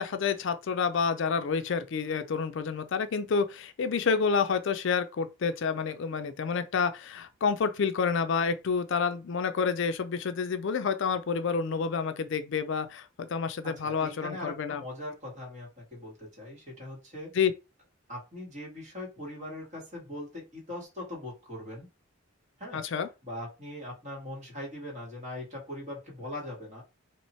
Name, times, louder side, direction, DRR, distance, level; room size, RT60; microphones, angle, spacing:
voice 1, 0.0-14.8 17.3-17.5 22.7-23.1, left 5 dB, 55° left, 0.4 m, -29 dB
voice 2, 13.6-17.3 18.1-21.9 22.6-22.8 23.2-26.8, left 1 dB, 35° right, 2.0 m, -41 dB
3.1 x 3.0 x 4.3 m
head